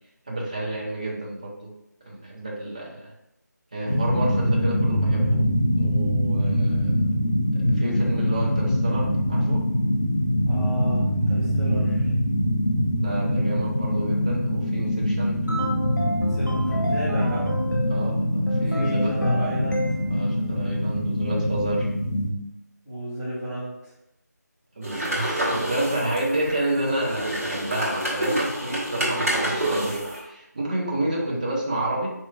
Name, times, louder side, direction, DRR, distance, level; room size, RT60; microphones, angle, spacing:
voice 1, 0.3-1.7 2.0-3.1 3.7-5.4 5.8-7.0 7.5-9.6 13.0-15.3 17.9-19.1 20.1-21.9 24.8-32.1, right 1 dB, 25° right, -3 dB, 0.6 m, -30 dB
sound 1, 3.9-22.3, equal, 60° left, 1.2 m, -24 dB
voice 2, 10.5-12.1 16.2-17.5 18.6-19.8 22.8-23.7, equal, 10° left, -20 dB, 1.3 m, -32 dB
sound 2, 15.5-18.1 18.5-20.3, left 1 dB, 85° left, 0.8 m, -29 dB
sound 3, 24.8-30.2, right 1 dB, 50° right, 1.4 m, -28 dB
4.5 x 3.0 x 2.3 m, 0.84 s
figure-of-eight pair, 165°, 10 cm